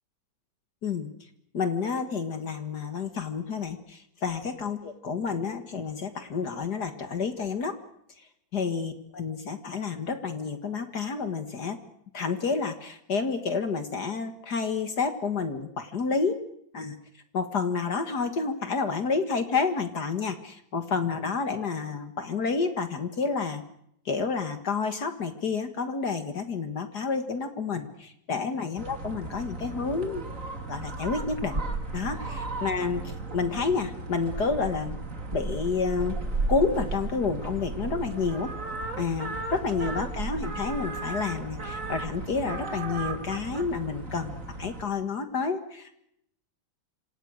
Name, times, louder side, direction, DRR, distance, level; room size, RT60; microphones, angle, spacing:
voice 1, 0.8-1.1 1.5-7.8 8.5-11.8 12.1-16.4 16.7-17.0 17.3-23.6 24.1-30.2 30.7-31.6 31.9-35.0 35.3-36.2 36.5-38.5 39.0-46.0, left 5 dB, 55° left, 8 dB, 2.2 m, -29 dB
sound 1, 28.8-44.8, right 3 dB, 40° right, 3.1 m, -35 dB
27.0 x 26.5 x 6.5 m, 0.74 s
omnidirectional pair, 2.2 m